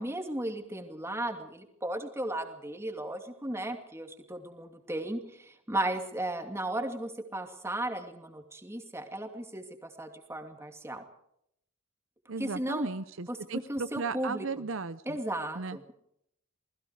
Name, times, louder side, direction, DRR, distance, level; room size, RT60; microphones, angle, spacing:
voice 1, 0.0-11.0 12.4-12.9 13.3-14.5 15.1-15.9, right 1 dB, 10° right, 5 dB, 2.5 m, -35 dB
voice 2, 12.3-15.2 15.5-15.8, right 4 dB, 60° right, 13 dB, 0.7 m, -36 dB
28.5 x 20.0 x 4.9 m, 0.75 s
head